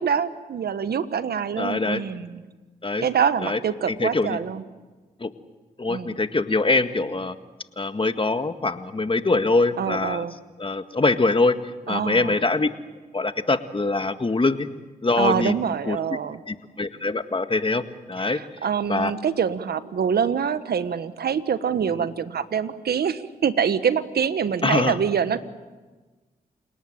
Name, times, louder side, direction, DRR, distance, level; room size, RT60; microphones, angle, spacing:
voice 1, 0.0-2.4 3.0-4.6 5.9-6.2 9.8-10.3 11.9-12.4 15.2-16.4 18.2-25.4, right 7 dB, 70° right, 12 dB, 1.4 m, -25 dB
voice 2, 1.6-2.0 2.8-3.1 3.4-3.6 3.9-4.4 5.2-5.3 5.8-7.3 7.8-10.3 10.6-11.5 11.9-12.7 13.1-14.7 15.0-15.5 15.9-16.0 16.5-18.4 18.9-19.1 24.6-25.0, left 3 dB, 30° left, 9 dB, 1.8 m, -23 dB
28.5 x 18.5 x 9.0 m, 1.3 s
supercardioid pair, 45°, 17 cm